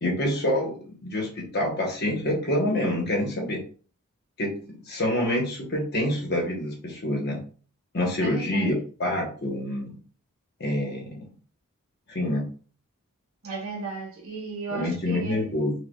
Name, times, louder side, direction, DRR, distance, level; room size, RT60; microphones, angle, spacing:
voice 1, 0.0-3.6 4.4-4.5 4.9-7.4 7.9-8.7 9.0-9.9 10.6-11.3 12.1-12.4 14.7-15.7, left 1 dB, 45° left, 1.1 m, -27 dB
voice 2, 8.2-8.8 13.4-15.5, right 4 dB, 70° right, 1.2 m, -35 dB
5.1 x 2.4 x 2.3 m
head